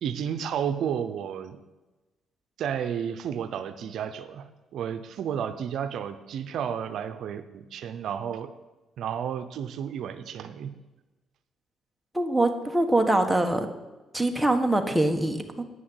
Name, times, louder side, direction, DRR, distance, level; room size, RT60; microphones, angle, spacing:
voice 1, 0.0-1.6 2.6-4.5 4.7-8.5 9.0-10.7, right 8 dB, 75° right, 10 dB, 0.7 m, -32 dB
voice 2, 12.1-13.7 14.1-15.6, right 1 dB, 5° right, 4 dB, 1.3 m, -23 dB
9.6 x 6.3 x 7.8 m, 1.1 s
cardioid pair, 90°, 0 cm